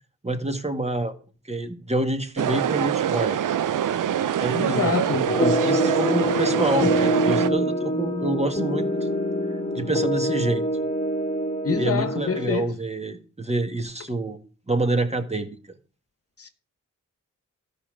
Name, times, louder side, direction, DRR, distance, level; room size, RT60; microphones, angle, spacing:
voice 1, 0.2-1.1 1.5-3.4 4.4-9.1 9.7-10.7 11.7-14.4 14.7-15.6, right 2 dB, 20° right, 1.7 m, -27 dB
sound 1, 2.4-7.5, right 10 dB, 80° right, 0.7 m, -24 dB
voice 2, 4.5-5.3 11.6-12.7 16.4-16.5, left 5 dB, 50° left, 1.2 m, -26 dB
sound 2, 5.3-12.5, equal, 20° left, 2.2 m, -25 dB
13.0 x 5.5 x 6.4 m
cardioid pair, 75°, 31 cm